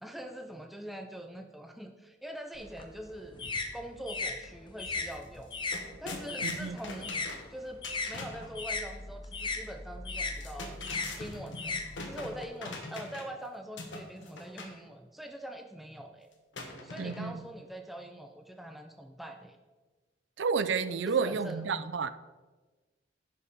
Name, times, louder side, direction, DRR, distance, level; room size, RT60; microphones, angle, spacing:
voice 1, 0.0-3.4 3.7-5.5 6.0-7.1 7.5-10.8 11.2-16.3 16.8-19.6 21.1-21.6, right 1 dB, ahead, 4 dB, 0.5 m, -43 dB
sound 1, 2.6-7.3 7.6-12.5, left 3 dB, 25° left, 0.9 m, -37 dB
sound 2, 5.0-5.1 5.4-8.5 10.2-13.4 13.8-14.8 16.5-17.4, left 2 dB, 75° left, 1.4 m, -43 dB
voice 2, 6.4-6.8 17.0-17.4 20.4-22.1, right 5 dB, 70° right, 13 dB, 0.5 m, -30 dB
10.5 x 5.5 x 5.1 m, 1.3 s
head